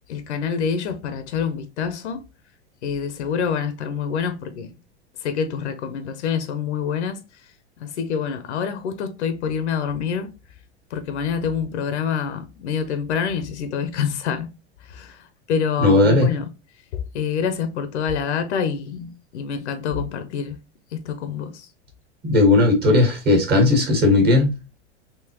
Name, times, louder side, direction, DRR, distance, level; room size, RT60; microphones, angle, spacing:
voice 1, 0.1-2.3 2.8-4.7 5.2-7.2 7.8-10.3 10.9-14.5 14.8-16.5 16.9-20.6 20.9-21.7, left 7 dB, 80° left, 0.7 m, -26 dB
voice 2, 15.8-16.3 22.2-24.5, left 2 dB, 30° right, 1.5 m, -16 dB
3.8 x 2.8 x 2.9 m
hypercardioid pair, 110°, 34 cm